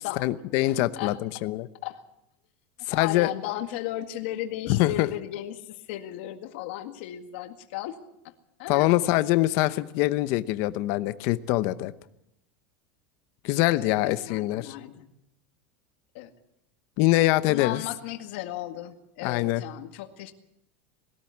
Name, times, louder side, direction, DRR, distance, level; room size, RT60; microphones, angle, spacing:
voice 1, 0.0-1.7 2.9-3.3 4.7-5.1 8.7-11.9 13.4-14.7 17.0-17.8 19.2-19.6, left 17 dB, 45° left, 13 dB, 0.9 m, -24 dB
voice 2, 0.6-1.2 1.8-2.0 2.9-8.0 8.6-8.9 13.7-15.1 16.1-16.3 17.5-20.3, left 13 dB, 60° left, 7 dB, 2.0 m, -35 dB
20.5 x 13.5 x 9.6 m, 0.83 s
supercardioid pair, 170°, 7 cm